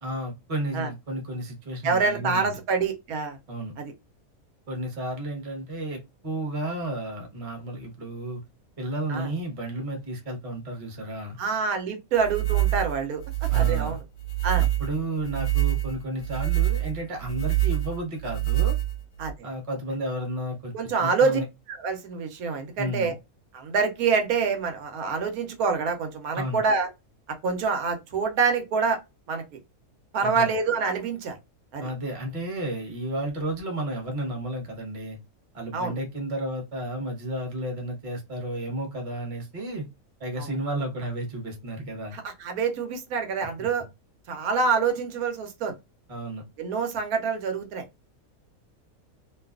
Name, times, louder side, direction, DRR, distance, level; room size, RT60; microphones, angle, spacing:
voice 1, 0.0-2.5 3.5-3.7 4.7-8.4 8.8-11.4 13.5-14.0 14.6-18.8 19.4-21.4 22.8-23.1 26.3-26.6 30.2-30.5 31.8-35.2 35.5-39.8 40.2-42.1 43.6-43.7 46.1-46.4, right 1 dB, 30° right, 0.7 m, -32 dB
voice 2, 1.8-3.4 3.8-3.9 9.1-9.3 11.4-13.2 13.5-14.0 14.4-14.7 19.2-19.3 20.7-21.4 21.8-23.1 23.5-26.9 27.4-29.0 29.3-29.4 30.1-31.4 31.7-31.8 35.7-35.9 40.4-40.5 42.1-43.8 44.3-45.7 46.6-47.8, right 5 dB, 80° right, 1.1 m, -26 dB
sound 1, 12.2-19.3, right 15 dB, 65° left, 0.8 m, -26 dB
2.5 x 2.3 x 2.3 m
omnidirectional pair, 1.5 m